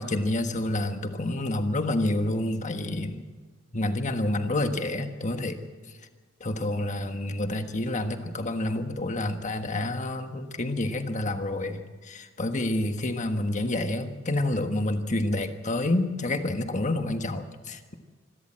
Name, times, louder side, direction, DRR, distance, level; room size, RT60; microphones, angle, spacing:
voice 1, 0.0-3.2 3.7-5.6 6.4-17.9, left 1 dB, 35° left, 7 dB, 1.4 m, -28 dB
25.5 x 13.0 x 7.7 m, 1.4 s
head